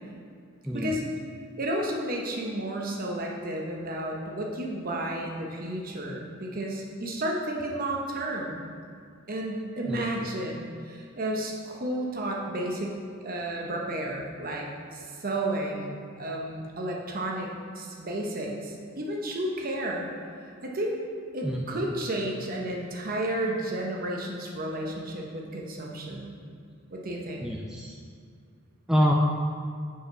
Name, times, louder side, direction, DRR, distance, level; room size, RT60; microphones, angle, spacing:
voice 1, 0.7-1.0 9.9-10.0 21.4-21.8 27.4-27.9 28.9-29.1, equal, 5° right, -2 dB, 0.3 m, -26 dB
voice 2, 1.6-8.6 9.3-17.5 17.7-20.1 20.6-20.9 21.3-26.3 26.9-27.5, right 1 dB, 45° right, -1 dB, 0.9 m, -32 dB
5.0 x 4.7 x 5.6 m, 2.2 s
head